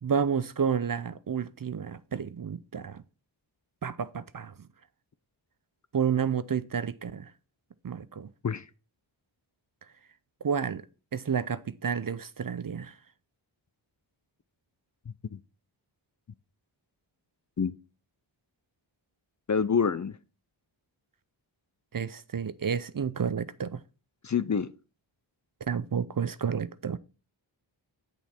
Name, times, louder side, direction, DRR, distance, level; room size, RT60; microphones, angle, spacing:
voice 1, 0.0-3.0 3.8-4.7 5.9-7.3 7.8-8.3 10.4-10.8 11.1-12.9 21.9-23.8 25.6-27.0, right 7 dB, 45° right, 0.6 m, -30 dB
voice 2, 19.5-20.1 24.2-24.7, left 6 dB, 35° left, 0.5 m, -26 dB
8.2 x 7.1 x 4.3 m
cardioid pair, 40°, 48 cm